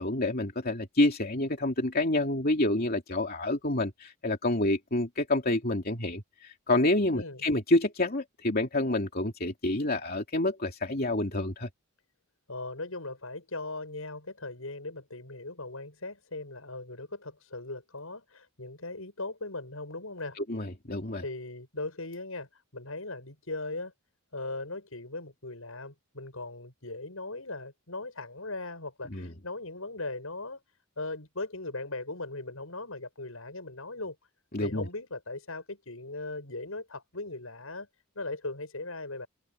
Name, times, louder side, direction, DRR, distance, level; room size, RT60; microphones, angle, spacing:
voice 1, 0.0-11.7 20.4-21.2 29.1-29.3 34.5-34.8, left 2 dB, 45° left, 2.9 m, -28 dB
voice 2, 7.1-7.5 12.5-20.4 21.2-23.9 24.3-30.6 31.0-34.2 34.6-37.9 38.1-39.3, left 2 dB, 75° left, 7.7 m, -39 dB
head